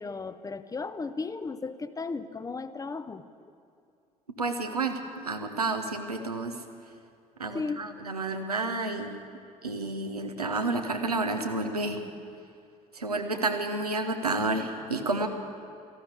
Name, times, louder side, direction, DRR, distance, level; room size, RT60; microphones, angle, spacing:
voice 1, 0.0-3.2 7.5-7.8, left 4 dB, 20° left, 13 dB, 0.7 m, -35 dB
voice 2, 4.4-5.0 5.2-6.5 7.4-9.2 9.6-12.0 12.9-15.3, right 3 dB, 85° right, 5 dB, 0.9 m, -30 dB
14.5 x 12.0 x 8.1 m, 2.4 s
figure-of-eight pair, 55°, 19 cm